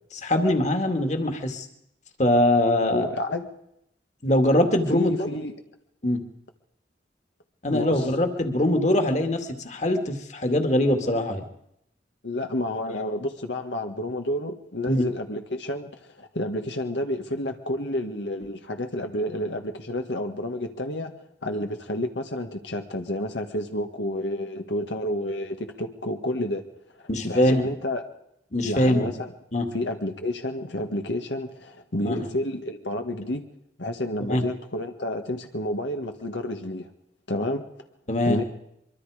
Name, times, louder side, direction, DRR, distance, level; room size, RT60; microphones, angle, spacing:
voice 1, 0.2-1.7 2.2-3.1 4.2-5.3 6.0-6.2 7.6-11.4 14.9-15.0 27.1-27.6 28.5-29.1 29.5-29.7 32.0-32.3 34.3-34.4 38.1-38.4, left 1 dB, 40° left, 5 dB, 2.3 m, -22 dB
voice 2, 2.8-3.5 4.9-5.5 7.7-8.1 12.2-21.1 21.4-26.6 27.2-28.0 28.6-29.3 29.7-33.4 33.8-36.9 37.3-37.6 38.3-38.4, left 1 dB, 85° left, 5 dB, 1.8 m, -30 dB
24.5 x 23.5 x 5.1 m, 0.78 s
head